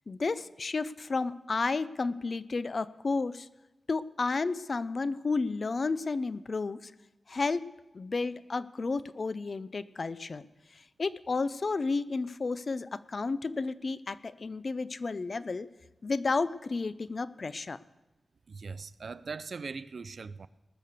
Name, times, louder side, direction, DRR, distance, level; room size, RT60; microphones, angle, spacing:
voice 1, 0.1-3.5 3.9-6.9 7.3-7.6 7.9-10.4 11.0-15.7 16.0-17.8, left 3 dB, 40° left, 0.4 m, -32 dB
voice 2, 18.5-20.5, right 4 dB, 55° right, 0.4 m, -40 dB
19.5 x 6.6 x 6.7 m
wide cardioid pair, 160°, 0 cm